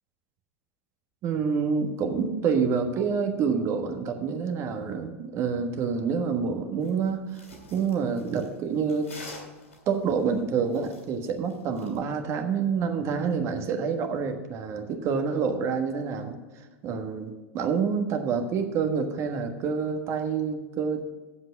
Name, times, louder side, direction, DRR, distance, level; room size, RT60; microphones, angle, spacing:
voice 1, 1.2-7.4 7.7-9.1 9.9-21.0, right 6 dB, 40° right, 6 dB, 1.4 m, -27 dB
sound 1, 6.8-12.0, left 2 dB, 75° left, 3.1 m, -48 dB
7.9 x 7.8 x 7.3 m, 1.2 s
figure-of-eight pair, 85°, 7 cm